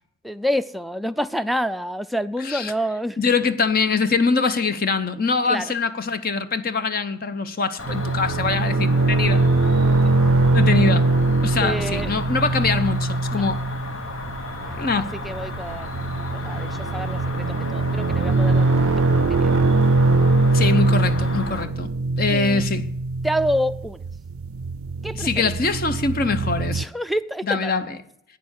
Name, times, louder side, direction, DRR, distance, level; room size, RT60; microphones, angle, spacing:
voice 1, 0.2-3.2 5.5-5.7 11.6-12.1 13.3-13.5 14.6-16.0 16.3-19.6 22.3-22.6 23.2-24.0 25.0-25.5 26.7-27.7, equal, ahead, 0.3 m, -28 dB
voice 2, 3.2-9.4 10.5-11.1 11.4-13.6 14.8-15.1 20.5-22.9 25.1-26.9 27.4-28.0, left 4 dB, 45° left, 0.7 m, -23 dB
Cricket, 7.8-21.6, left 3 dB, 65° left, 1.2 m, -34 dB
sound 1, 7.8-26.8, right 2 dB, 80° right, 0.4 m, -22 dB
9.2 x 6.8 x 8.7 m
head